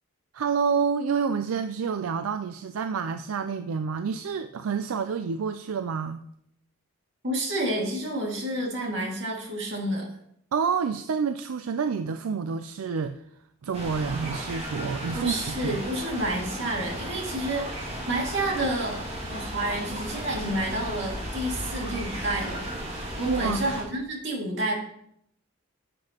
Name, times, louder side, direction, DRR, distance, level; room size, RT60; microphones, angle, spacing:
voice 1, 0.3-6.2 10.5-13.2 13.6-15.8 23.3-23.6, right 6 dB, 80° right, 9 dB, 0.4 m, -28 dB
voice 2, 7.2-10.1 15.1-19.0 19.3-22.7 23.2-24.7, right 1 dB, 55° right, -2 dB, 2.2 m, -29 dB
sound 1, 13.7-23.8, equal, 30° right, 2.2 m, -35 dB
10.5 x 7.7 x 2.9 m, 0.73 s
head